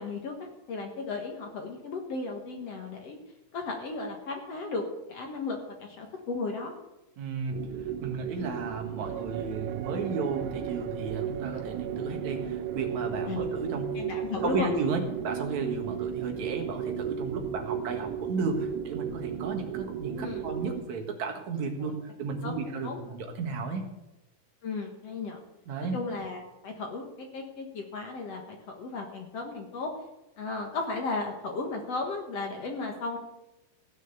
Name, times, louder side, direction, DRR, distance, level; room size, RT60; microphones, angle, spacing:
voice 1, 0.0-3.2 3.5-4.8 5.1-6.7 13.3-13.4 14.0-14.7 20.2-20.4 21.8-21.9 22.4-23.0 24.6-25.4 25.9-29.9 30.4-33.2, left 3 dB, 55° left, 2 dB, 2.1 m, -35 dB
voice 2, 7.2-7.6 8.0-14.1 14.4-23.9 25.7-25.9, right 4 dB, 55° right, 3 dB, 2.7 m, -34 dB
sound 1, 7.5-20.8, right 9 dB, 75° right, 1.9 m, -34 dB
16.5 x 6.2 x 8.1 m, 0.92 s
omnidirectional pair, 4.4 m